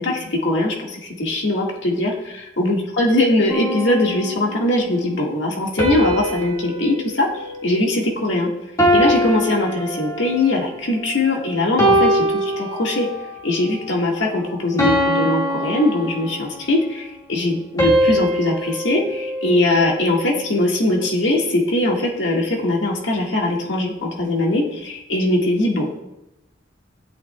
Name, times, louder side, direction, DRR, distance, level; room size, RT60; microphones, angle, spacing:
voice 1, 0.0-8.5 8.9-13.1 13.4-26.0, left 1 dB, 85° left, -1 dB, 1.7 m, -21 dB
sound 1, 3.5-4.8 5.8-8.3 8.8-10.5 11.1-11.3 11.8-13.3 13.8-14.1 14.8-16.7 17.8-20.2, equal, 20° left, 1.8 m, -22 dB
14.0 x 8.6 x 2.3 m, 0.90 s
head